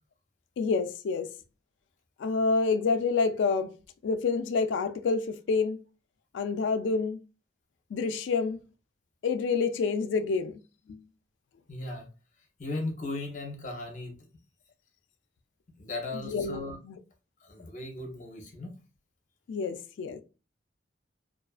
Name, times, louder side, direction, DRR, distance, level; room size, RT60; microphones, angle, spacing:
voice 1, 0.6-1.3 2.2-3.8 4.0-5.8 6.3-7.2 7.9-8.6 9.2-10.6 10.9-11.0 16.1-16.6 16.8-17.0 19.5-20.2, left 4 dB, 75° left, 0.3 m, -28 dB
voice 2, 11.7-12.1 12.6-14.2 15.8-16.8 17.4-18.7, left 2 dB, 40° left, 0.7 m, -37 dB
2.4 x 2.4 x 2.3 m
head